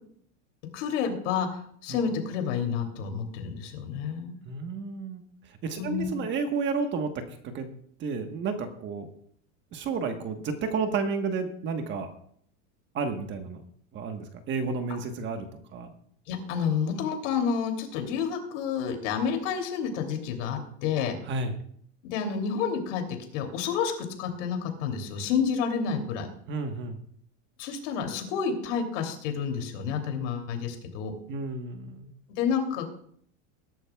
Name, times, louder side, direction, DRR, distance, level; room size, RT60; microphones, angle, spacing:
voice 1, 0.7-4.3 5.8-6.1 16.3-21.2 22.1-23.9 24.2-26.3 27.6-31.1 32.4-32.9, left 6 dB, 65° left, 4 dB, 2.9 m, -29 dB
voice 2, 4.4-7.7 8.0-9.1 9.7-12.1 12.9-13.6 13.9-15.5 15.7-15.9 21.3-21.5 26.5-27.0 31.3-32.1, right 4 dB, 30° right, 6 dB, 1.3 m, -31 dB
20.5 x 11.5 x 2.3 m, 0.63 s
supercardioid pair, 150°, 39 cm